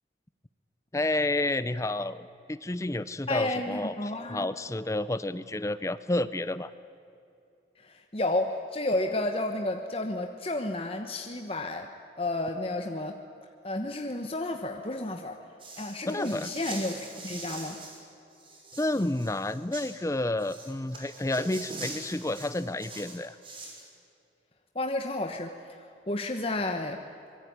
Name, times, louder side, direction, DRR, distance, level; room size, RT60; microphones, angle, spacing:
voice 1, 0.9-6.7 16.1-16.5 18.7-23.4, left 2 dB, 15° left, 14 dB, 0.5 m, -30 dB
voice 2, 3.3-4.5 7.8-11.9 12.2-13.1 13.6-15.4 15.8-17.8 24.7-27.0, left 2 dB, 35° left, 4 dB, 1.2 m, -31 dB
Dressing a Cotton Pullover, 15.6-18.0 18.3-19.9 20.4-23.8, right 2 dB, 30° right, 6.0 m, -43 dB
25.5 x 22.0 x 9.6 m, 2.7 s
head